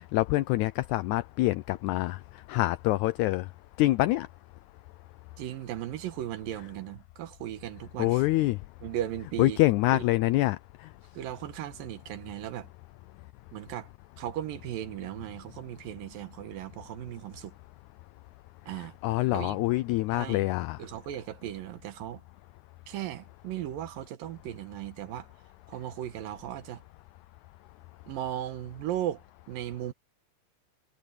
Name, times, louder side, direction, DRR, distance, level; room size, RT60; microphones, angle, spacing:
voice 1, 0.1-2.2 2.5-3.5 3.8-4.3 8.0-8.6 9.4-10.6 19.0-20.8, left 18 dB, 85° left, 1.7 m, -25 dB
voice 2, 5.4-8.2 8.8-9.6 9.9-10.0 11.1-12.7 13.5-13.9 14.2-17.5 18.7-19.0 19.3-19.6 20.1-20.5 20.8-22.2 22.9-25.3 25.7-26.8 28.1-29.2 29.5-29.9, right 12 dB, 90° right, 2.9 m, -37 dB
omnidirectional pair, 3.9 m